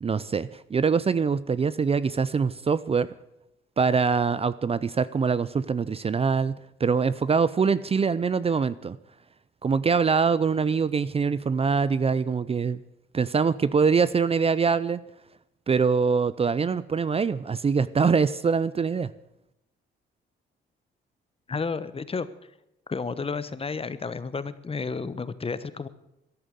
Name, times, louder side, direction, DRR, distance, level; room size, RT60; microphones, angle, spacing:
voice 1, 0.0-3.1 3.8-9.0 9.6-12.8 13.1-15.0 15.7-19.1, right 5 dB, 30° right, 17 dB, 0.6 m, -24 dB
voice 2, 21.5-22.3 22.9-25.9, left 4 dB, 30° left, 15 dB, 1.1 m, -31 dB
14.0 x 11.0 x 8.1 m, 0.86 s
cardioid pair, 90°, 20 cm